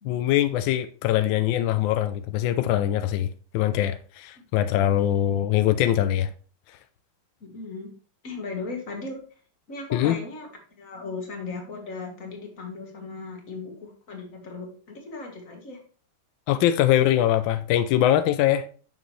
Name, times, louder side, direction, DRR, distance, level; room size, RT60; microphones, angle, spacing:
voice 1, 0.0-3.3 3.5-6.3 9.9-10.2 16.5-18.6, left 12 dB, 75° left, 1.2 m, -22 dB
voice 2, 7.4-7.9 8.2-9.2 9.7-10.5 10.8-15.8, left 3 dB, 40° left, 1.9 m, -37 dB
7.1 x 5.9 x 3.2 m
omnidirectional pair, 2.4 m